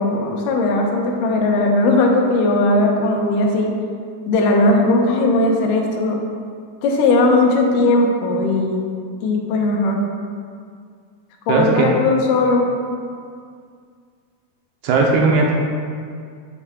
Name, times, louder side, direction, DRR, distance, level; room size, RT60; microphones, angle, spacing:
voice 1, 0.0-3.7 4.3-6.2 6.8-8.9 9.2-10.1 11.5-12.7, left 2 dB, 80° left, 0 dB, 1.9 m, -17 dB
voice 2, 11.5-11.9 14.8-15.5, right 3 dB, 75° right, -1 dB, 2.5 m, -16 dB
9.2 x 7.1 x 2.4 m, 2.1 s
omnidirectional pair, 4.9 m